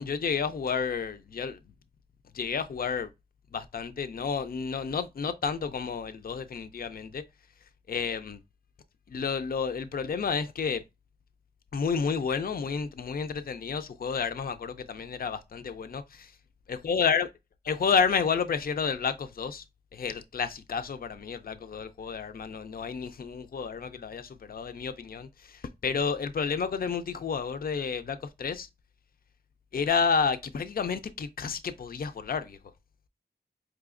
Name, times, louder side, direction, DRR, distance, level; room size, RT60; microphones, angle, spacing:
voice 1, 0.0-1.6 2.3-3.1 3.5-7.2 7.9-8.4 9.1-10.8 11.7-16.3 16.7-17.3 17.7-19.6 19.9-28.7 29.7-32.6, left 6 dB, 60° left, 0.4 m, -30 dB
4.9 x 2.7 x 2.4 m
wide cardioid pair, 65°, 18 cm